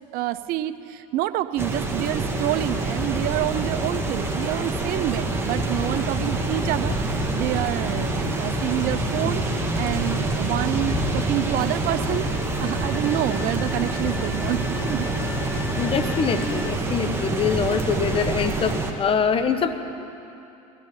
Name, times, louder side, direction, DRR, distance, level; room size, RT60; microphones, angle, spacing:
voice 1, 0.1-12.3 12.6-15.1, right 14 dB, 55° right, 13 dB, 0.7 m, -28 dB
sound 1, 1.6-18.9, right 2 dB, 15° right, 1.9 m, -26 dB
sound 2, 6.4-16.7, left 5 dB, 65° left, 1.2 m, -35 dB
voice 2, 15.8-19.8, left 6 dB, 30° left, 8 dB, 1.2 m, -24 dB
22.0 x 17.0 x 3.9 m, 2.7 s
hypercardioid pair, 90°, 18 cm